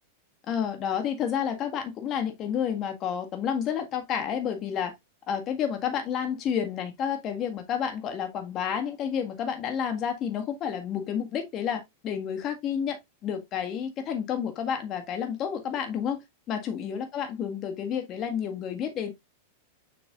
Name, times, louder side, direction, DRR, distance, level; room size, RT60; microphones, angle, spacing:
voice 1, 0.5-4.9 5.3-16.2 16.5-19.1, left 8 dB, 40° left, 1.7 m, -30 dB
6.8 x 6.5 x 2.4 m
hypercardioid pair, 105°, 0 cm